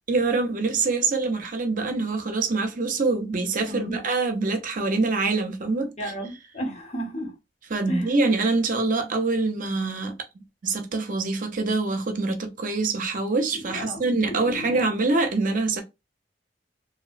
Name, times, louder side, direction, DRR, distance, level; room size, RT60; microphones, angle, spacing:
voice 1, 0.1-6.1 7.7-10.1 10.6-15.8, right 3 dB, 45° right, 0.6 m, -25 dB
voice 2, 3.7-4.0 6.0-7.4 7.9-8.1 13.5-14.8, equal, 40° left, 0.7 m, -33 dB
2.5 x 2.1 x 2.4 m
head